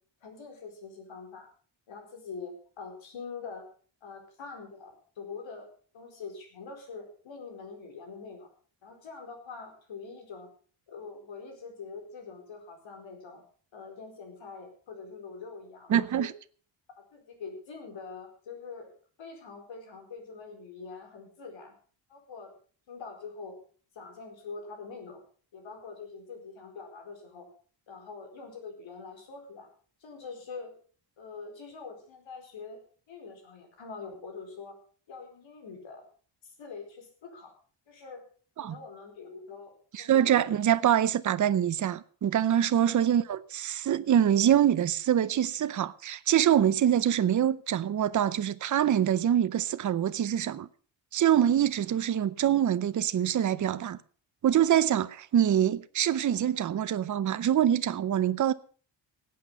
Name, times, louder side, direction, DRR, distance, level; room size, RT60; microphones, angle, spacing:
voice 1, 0.2-1.5 1.9-3.7 4.0-5.7 5.9-8.5 8.8-10.5 10.9-13.4 13.7-16.3 17.1-18.9 19.2-21.7 22.1-22.5 22.9-23.6 23.9-25.2 25.5-27.5 27.9-29.7 30.0-30.7 31.2-32.8 33.1-34.8 35.1-36.0 36.4-37.5 37.9-38.2 38.6-40.4 42.9-43.0, left 4 dB, 75° left, 4.6 m, -44 dB
voice 2, 15.9-16.3 38.6-38.8 39.9-50.7 51.1-54.0 54.4-58.5, right 10 dB, 40° right, 0.6 m, -25 dB
17.0 x 8.6 x 5.5 m
wide cardioid pair, 155°, 46 cm